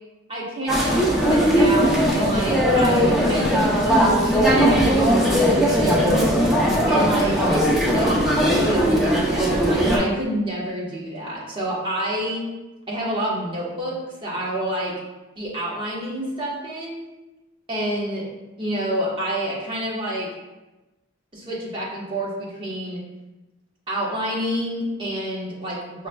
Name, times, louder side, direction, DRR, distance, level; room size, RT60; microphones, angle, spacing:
voice 1, 0.3-0.9 1.3-6.2 6.9-12.5 12.9-13.9 14.2-14.9 15.4-17.0 17.7-18.2 18.6-20.3 21.3-23.0 23.9-26.1, right 1 dB, 25° right, -6 dB, 1.0 m, -28 dB
sound 1, 0.7-10.0, equal, ahead, 0.5 m, -19 dB
5.2 x 3.1 x 2.2 m, 1.1 s
head